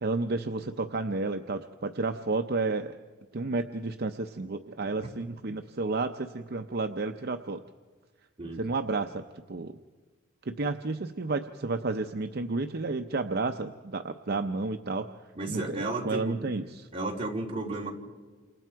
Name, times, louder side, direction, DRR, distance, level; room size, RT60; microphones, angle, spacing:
voice 1, 0.0-3.0 3.3-7.6 8.6-9.2 9.5-9.8 10.4-15.1 15.5-16.9, right 3 dB, 50° right, 7 dB, 0.7 m, -31 dB
voice 2, 15.3-16.5 16.9-17.9, right 2 dB, 30° right, -2 dB, 3.5 m, -33 dB
28.5 x 27.5 x 4.7 m, 1.4 s
head